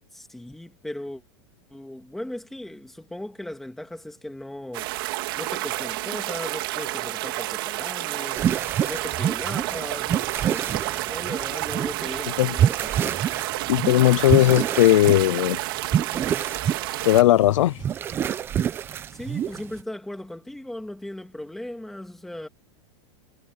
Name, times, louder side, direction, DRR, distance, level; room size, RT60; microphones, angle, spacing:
voice 1, 0.1-1.2 1.7-4.9 5.4-8.5 8.9-10.8 11.1-13.2 19.1-22.5, left 1 dB, ahead, 2.5 m, -37 dB
sound 1, 4.7-17.2, right 19 dB, 45° right, 2.6 m, -30 dB
sound 2, 8.3-19.8, right 9 dB, 15° right, 0.7 m, -27 dB
voice 2, 13.7-15.6 17.0-17.8, left 14 dB, 80° left, 0.5 m, -17 dB
supercardioid pair, 175°, 16 cm